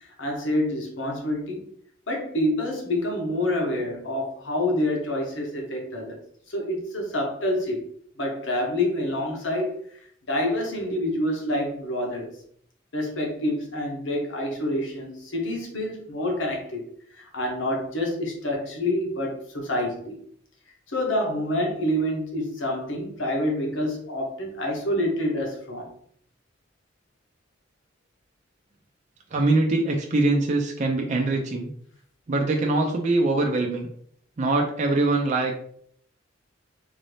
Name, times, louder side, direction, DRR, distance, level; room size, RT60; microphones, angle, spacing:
voice 1, 0.2-1.7 2.1-6.2 6.5-7.8 8.2-9.8 10.3-12.3 12.9-16.8 17.1-20.2 20.9-25.9, left 1 dB, 75° left, 1 dB, 1.1 m, -27 dB
voice 2, 29.3-31.7 32.3-33.9 34.4-35.5, right 2 dB, 40° right, 1 dB, 0.5 m, -23 dB
3.7 x 2.7 x 3.3 m, 0.64 s
head